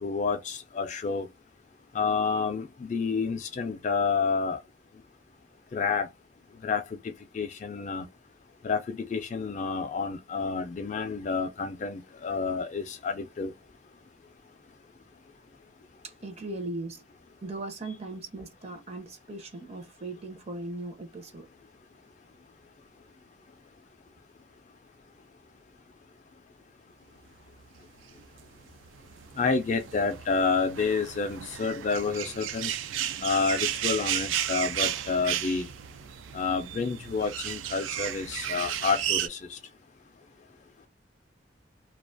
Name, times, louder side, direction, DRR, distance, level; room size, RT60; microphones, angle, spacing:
voice 1, 0.0-1.3 1.9-4.6 5.7-6.1 6.6-6.8 7.3-8.1 8.6-13.5 29.4-32.7 33.2-35.7 36.3-39.6, left 5 dB, 40° left, 0.3 m, -29 dB
voice 2, 16.0-17.0 17.4-21.5, right 2 dB, 35° right, 0.5 m, -38 dB
sound 1, 28.2-39.3, right 10 dB, 90° right, 0.3 m, -33 dB
2.4 x 2.2 x 2.5 m
head